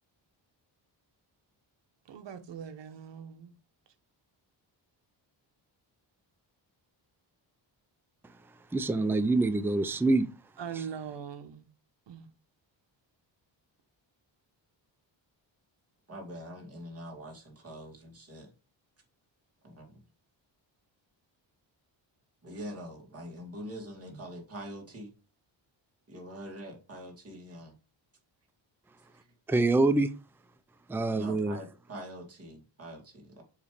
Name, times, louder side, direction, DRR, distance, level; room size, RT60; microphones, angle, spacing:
voice 1, 2.0-3.5 10.6-11.7 12.1-12.3, right 7 dB, 70° right, 1.1 m, -41 dB
voice 2, 8.7-10.3 29.5-30.1 30.9-31.6, right 2 dB, 5° right, 0.4 m, -25 dB
voice 3, 16.1-18.5 19.6-20.0 22.4-25.1 26.1-27.8 29.1-29.3 31.1-33.4, equal, 30° right, 2.5 m, -44 dB
7.3 x 3.2 x 5.0 m
cardioid pair, 120°, 45 cm